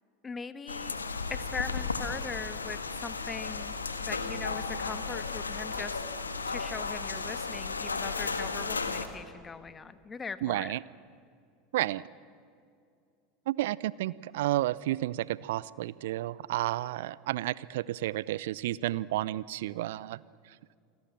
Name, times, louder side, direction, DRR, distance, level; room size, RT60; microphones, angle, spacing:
voice 1, 0.2-1.0 1.3-3.7 4.0-6.0 6.5-10.8, left 5 dB, 20° left, 12 dB, 1.4 m, -40 dB
sound 1, 0.7-9.1, left 4 dB, 85° left, 1.5 m, -34 dB
voice 2, 10.4-10.8 11.7-12.0 13.5-20.2, right 15 dB, 65° right, 21 dB, 0.6 m, -31 dB
29.0 x 20.0 x 7.5 m, 2.4 s
figure-of-eight pair, 80°, 0 cm